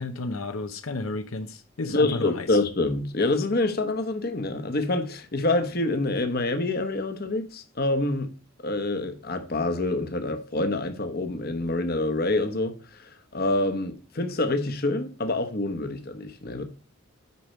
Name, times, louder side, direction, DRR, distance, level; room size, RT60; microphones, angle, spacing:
voice 1, 0.0-2.6, left 3 dB, 80° left, 0.8 m, -32 dB
voice 2, 1.9-8.3 8.6-16.6, left 2 dB, 45° left, 1.1 m, -26 dB
8.5 x 5.2 x 4.3 m
head